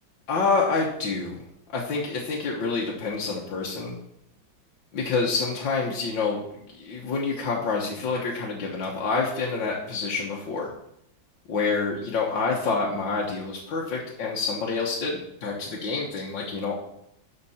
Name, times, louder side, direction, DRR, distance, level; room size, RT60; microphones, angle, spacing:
voice 1, 0.3-1.4 1.7-3.9 4.9-6.4 6.8-10.7 11.5-16.7, left 4 dB, 75° left, -3 dB, 1.9 m, -27 dB
12.5 x 5.9 x 4.3 m, 0.76 s
omnidirectional pair, 2.1 m